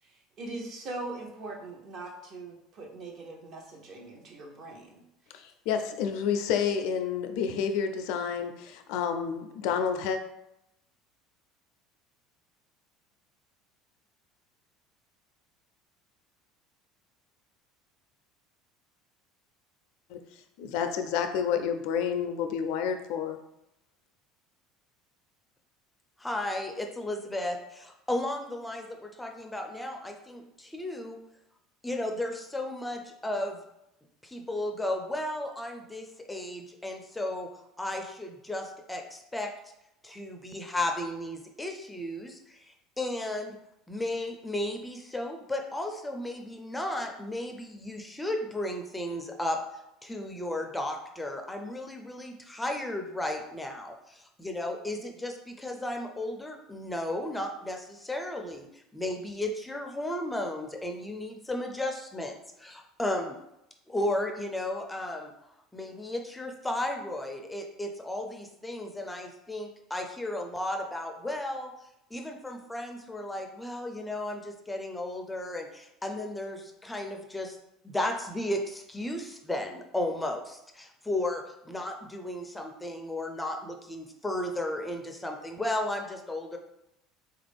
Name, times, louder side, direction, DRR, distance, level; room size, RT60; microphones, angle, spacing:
voice 1, 0.4-5.0, right 2 dB, 50° right, 0 dB, 0.9 m, -41 dB
voice 2, 5.3-10.2 20.1-20.2 20.6-23.4, left 7 dB, 70° left, 7 dB, 0.4 m, -29 dB
voice 3, 26.2-31.2 31.8-33.6 34.2-37.5 37.8-39.5 40.0-43.6 43.9-49.6 50.0-63.4 63.9-65.3 65.7-71.7 72.1-77.6 77.8-86.6, left 1 dB, 10° left, 4 dB, 0.4 m, -34 dB
3.3 x 2.5 x 3.4 m, 0.84 s
supercardioid pair, 110°, 0 cm